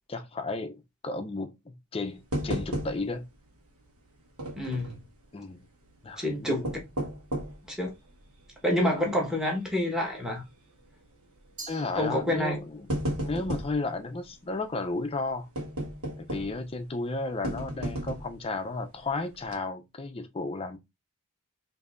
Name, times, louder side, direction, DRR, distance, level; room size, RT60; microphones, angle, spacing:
voice 1, 0.1-3.2 5.3-5.7 6.0-6.7 11.7-12.9 13.2-15.5 16.2-20.8, left 3 dB, 25° left, 0.4 m, -33 dB
sound 1, 2.3-3.3 3.6-3.7 4.4-5.1 6.4-7.7 8.2-8.3 9.0-9.2 9.5-9.6 10.8-11.1 12.0-12.1 12.5-13.8 15.6-16.7 17.4-18.4 19.0-19.1 19.4-19.5, equal, 80° right, 1.1 m, -33 dB
voice 2, 4.6-5.0 6.2-6.7 7.7-7.9 8.6-10.4 12.0-12.6, left 1 dB, 5° right, 1.1 m, -28 dB
Glass, 11.6-12.8, right 3 dB, 40° right, 1.4 m, -46 dB
5.1 x 2.7 x 2.4 m
head